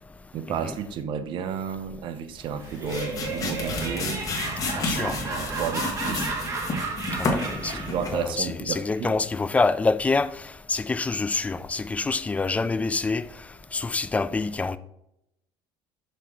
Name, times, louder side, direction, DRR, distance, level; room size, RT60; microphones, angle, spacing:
voice 1, 0.3-4.2 4.9-6.3 7.6-9.2, right 7 dB, 50° right, 0.8 m, -32 dB
sound 1, 2.5-8.3, left 2 dB, 35° left, 1.7 m, -31 dB
Laughter, 2.6-8.1, right 3 dB, 30° right, 1.6 m, -33 dB
Bass guitar, 3.6-9.9, left 2 dB, 80° right, 2.9 m, -51 dB
voice 2, 4.8-5.2 7.2-7.8 8.1-10.3 10.7-13.3 13.7-14.8, left 3 dB, 15° left, 0.3 m, -26 dB
6.5 x 6.2 x 4.4 m
cardioid pair, 140°, 11 cm